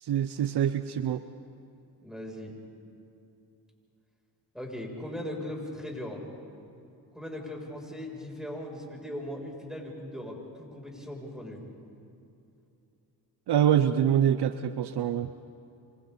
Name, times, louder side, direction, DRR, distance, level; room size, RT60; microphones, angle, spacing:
voice 1, 0.0-1.2 13.5-15.3, right 9 dB, 65° right, 12 dB, 0.8 m, -25 dB
voice 2, 2.0-2.5 4.5-6.2 7.1-11.6, left 1 dB, ahead, -1 dB, 7.1 m, -39 dB
28.0 x 26.5 x 4.1 m, 2.7 s
supercardioid pair, 55°, 44 cm